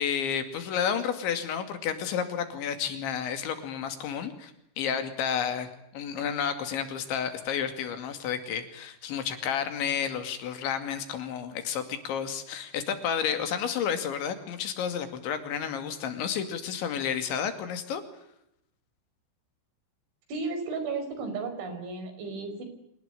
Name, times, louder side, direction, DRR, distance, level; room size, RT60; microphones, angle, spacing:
voice 1, 0.0-18.0, left 8 dB, 75° left, 9 dB, 4.6 m, -31 dB
voice 2, 20.3-22.6, right 4 dB, 70° right, 8 dB, 7.3 m, -34 dB
26.0 x 19.5 x 9.3 m, 0.77 s
omnidirectional pair, 5.5 m